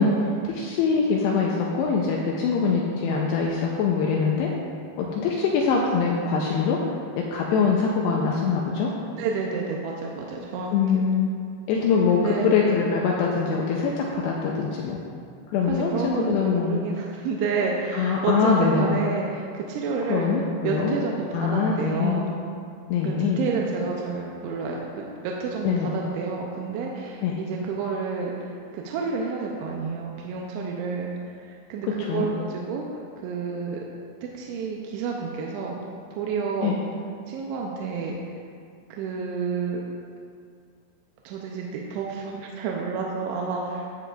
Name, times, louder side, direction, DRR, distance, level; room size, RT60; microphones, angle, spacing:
voice 1, 0.0-4.5 5.0-6.8 7.2-8.9 10.7-11.3 11.7-15.0 15.5-16.8 17.9-19.0 20.1-21.0 21.3-22.2 22.9-23.4 25.6-25.9 27.2-27.3 31.9-32.3 36.6-36.8, left 5 dB, 85° left, -2 dB, 2.4 m, -23 dB
voice 2, 9.2-11.0 12.1-12.5 15.7-20.3 20.6-22.3 23.0-31.1 31.4-33.8 34.3-35.7 36.2-36.8 37.3-38.2 38.9-39.8 41.2-43.8, right 5 dB, 80° right, -1 dB, 2.9 m, -30 dB
12.5 x 7.7 x 2.4 m, 2.2 s
omnidirectional pair, 5.4 m